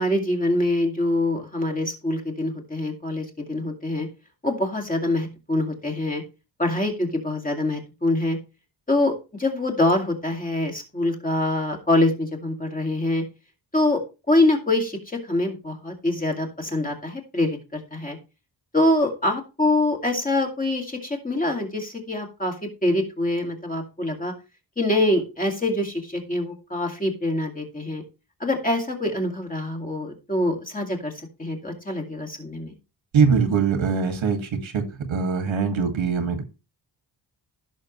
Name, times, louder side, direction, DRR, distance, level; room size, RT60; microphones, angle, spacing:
voice 1, 0.0-4.1 4.4-6.2 6.6-8.4 8.9-9.1 9.4-13.2 13.7-14.0 14.3-18.2 18.7-22.5 22.8-24.3 24.8-28.0 28.4-31.1 31.4-32.7, left 1 dB, 20° left, 2 dB, 2.3 m, -24 dB
voice 2, 33.1-34.8 35.1-36.4, right 5 dB, 90° right, 7 dB, 2.4 m, -22 dB
16.0 x 6.7 x 3.2 m, 0.29 s
wide cardioid pair, 170°, 46 cm